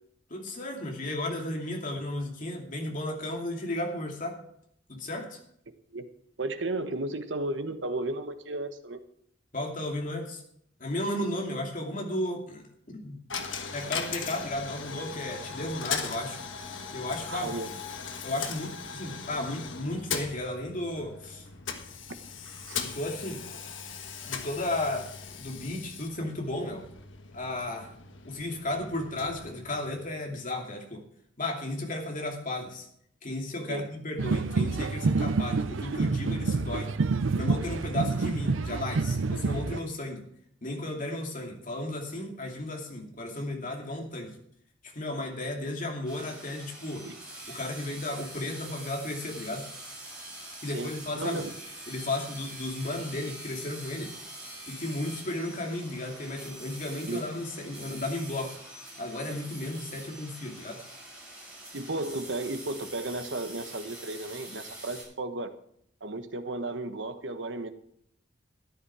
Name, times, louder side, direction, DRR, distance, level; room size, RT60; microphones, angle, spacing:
voice 1, 0.3-4.4 4.9-5.4 9.5-10.4 10.8-13.2 13.7-16.4 16.9-17.5 18.2-21.5 22.8-23.4 24.2-25.1 25.3-26.8 27.3-27.9 28.2-31.0 31.4-32.9 33.2-36.9 37.3-40.2 40.6-44.3 44.9-47.0 47.5-49.7 50.6-51.5 51.9-54.1 54.7-58.5 59.0-60.8, left 1 dB, 45° left, 1 dB, 2.7 m, -34 dB
voice 2, 6.4-9.0 17.3-17.7 22.5-22.8 33.7-33.9 47.0-47.1 50.7-51.5 57.1-57.2 61.7-65.5 66.0-67.7, right 2 dB, 70° right, 9 dB, 1.2 m, -34 dB
Coin (dropping), 13.3-30.2, left 6 dB, 85° left, 1.4 m, -39 dB
sound 1, 34.2-39.8, right 4 dB, 90° right, 0.6 m, -28 dB
sound 2, 46.1-65.0, right 1 dB, 5° right, 6.4 m, -44 dB
13.0 x 10.5 x 4.8 m, 0.69 s
head